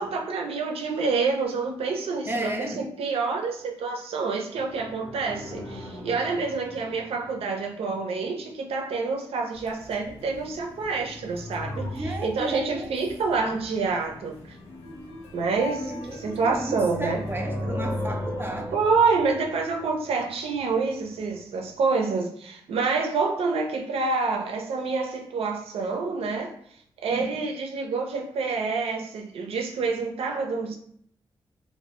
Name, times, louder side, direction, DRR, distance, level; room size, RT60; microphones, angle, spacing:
voice 1, 0.0-14.4 15.3-17.2 18.7-26.6 27.0-30.8, right 4 dB, 80° right, 2 dB, 0.5 m, -27 dB
voice 2, 2.3-2.8 11.9-12.9 15.6-18.8 27.1-27.3, right 1 dB, 20° right, 3 dB, 0.4 m, -33 dB
sound 1, 4.5-7.6 11.0-12.7 15.1-21.1 21.4-21.5, equal, 40° left, 0.7 m, -37 dB
sound 2, 9.5-17.4, left 2 dB, 85° left, 0.5 m, -44 dB
2.1 x 2.0 x 2.9 m, 0.64 s
cardioid pair, 55°, 10 cm